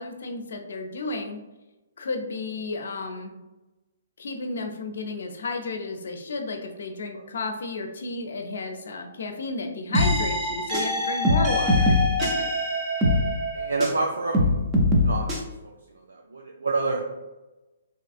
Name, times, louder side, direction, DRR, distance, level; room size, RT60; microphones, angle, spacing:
voice 1, 0.0-1.4 2.0-3.4 4.2-11.9 12.2-12.3, left 3 dB, 65° left, 5 dB, 0.5 m, -32 dB
sound 1, 9.9-14.0 14.3-15.4, left 1 dB, 25° right, 0.6 m, -23 dB
voice 2, 13.5-14.6 14.9-17.0, right 3 dB, 75° right, 0 dB, 0.4 m, -29 dB
3.2 x 2.9 x 2.4 m, 1.1 s
figure-of-eight pair, 125°, 0 cm